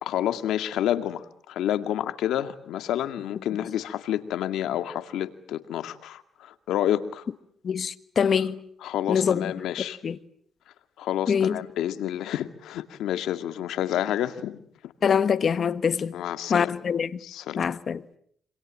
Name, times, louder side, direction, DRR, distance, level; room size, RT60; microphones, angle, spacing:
voice 1, 0.0-7.3 8.8-10.0 11.0-14.6 14.8-14.9 16.1-16.8 17.2-17.6, left 11 dB, 80° left, 2.1 m, -29 dB
voice 2, 7.6-8.6 9.1-9.5 10.0-10.2 11.3-11.6 15.0-16.2 16.5-17.2 17.6-18.0, left 7 dB, 50° left, 1.4 m, -24 dB
27.0 x 26.5 x 7.5 m
cardioid pair, 90°, 0 cm